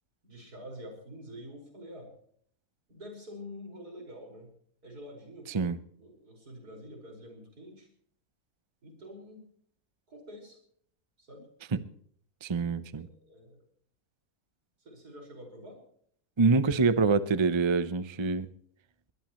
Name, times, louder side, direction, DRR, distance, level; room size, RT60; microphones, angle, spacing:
voice 1, 0.2-2.1 2.9-4.5 4.8-5.7 6.0-7.9 8.8-9.4 10.1-10.6 11.2-11.5 13.0-13.6 14.8-15.8, equal, 85° right, 1 dB, 5.9 m, -47 dB
voice 2, 12.4-13.1 16.4-18.5, right 4 dB, 30° right, 13 dB, 0.5 m, -25 dB
20.5 x 20.5 x 3.1 m, 0.62 s
omnidirectional pair, 1.6 m